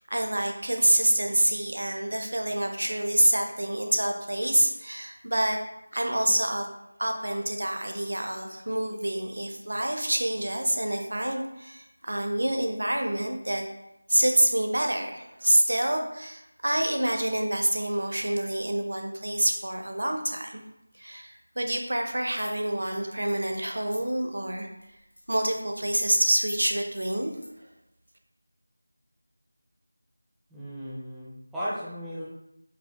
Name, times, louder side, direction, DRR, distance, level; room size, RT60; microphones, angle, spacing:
voice 1, 0.0-5.6 5.9-6.7 7.0-13.6 14.1-20.6 21.0-24.7 25.3-27.3, right 1 dB, 70° right, 4 dB, 0.6 m, -27 dB
sound 1, 22.4-24.2 24.6-24.8 25.1-25.6 26.0-26.2 26.5-26.6 26.9-27.5, equal, 80° left, 1.2 m, -41 dB
voice 2, 30.5-32.2, equal, ahead, -11 dB, 0.4 m, -35 dB
4.7 x 2.0 x 2.9 m, 0.86 s
figure-of-eight pair, 170°, 0 cm